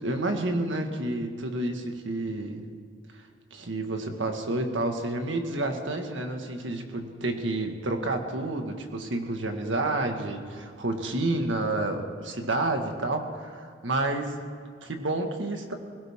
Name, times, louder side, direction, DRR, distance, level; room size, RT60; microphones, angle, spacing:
voice 1, 0.0-2.7 3.1-14.4 14.8-15.7, right 2 dB, 80° right, 4 dB, 1.8 m, -30 dB
21.0 x 17.5 x 3.7 m, 2.2 s
head